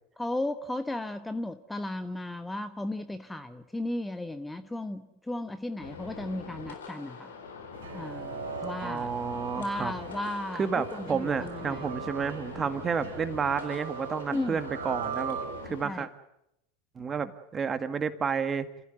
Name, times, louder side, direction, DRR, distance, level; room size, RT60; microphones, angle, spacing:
voice 1, 0.2-7.3 7.9-9.1 9.6-12.0 14.3-14.6 15.8-16.1, left 1 dB, 10° left, 10 dB, 1.2 m, -35 dB
sound 1, 5.8-15.8, left 5 dB, 80° left, 3.8 m, -43 dB
sound 2, 7.7-15.9, right 7 dB, 75° right, 5.1 m, -40 dB
voice 2, 8.6-9.9 10.6-15.4 15.6-16.1 17.0-18.7, right 6 dB, 25° right, 9 dB, 2.1 m, -31 dB
28.5 x 15.5 x 9.5 m, 0.82 s
hypercardioid pair, 85°, 0 cm